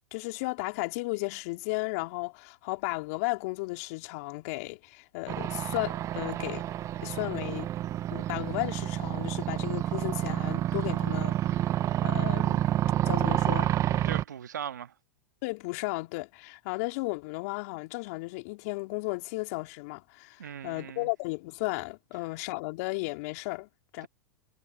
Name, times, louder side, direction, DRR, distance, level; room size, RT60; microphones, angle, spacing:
voice 1, 0.1-6.6 7.0-7.7 8.1-11.4 12.0-12.6 13.1-13.7 15.4-24.1, left 26 dB, 55° left, 4.0 m, -34 dB
sound 1, 5.3-14.2, right 12 dB, 35° right, 0.7 m, -29 dB
voice 2, 14.0-14.9 20.4-21.1 24.0-24.1, right 9 dB, 80° right, 1.6 m, -38 dB
hypercardioid pair, 105°, 9 cm